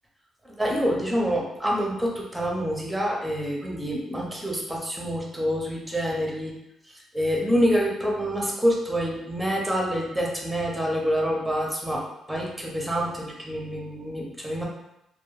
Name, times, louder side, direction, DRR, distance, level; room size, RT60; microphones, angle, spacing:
voice 1, 0.4-6.5 6.9-14.7, equal, 5° right, -2 dB, 0.6 m, -27 dB
2.2 x 2.1 x 3.0 m, 0.86 s
cardioid pair, 90°, 0 cm